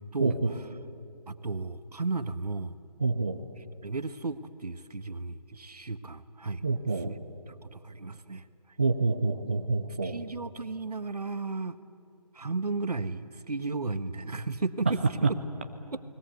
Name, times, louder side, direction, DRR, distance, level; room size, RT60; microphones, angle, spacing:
voice 1, 0.2-0.5 3.0-3.4 6.6-7.1 8.8-10.2 15.2-15.3, right 3 dB, 20° right, 5 dB, 0.5 m, -27 dB
voice 2, 1.3-2.8 3.6-6.6 6.9-7.1 7.5-8.5 10.0-11.8 12.3-15.4 15.9-16.0, right 3 dB, 70° right, 11 dB, 1.3 m, -34 dB
30.0 x 20.5 x 8.1 m, 2.5 s
figure-of-eight pair, 160°, 21 cm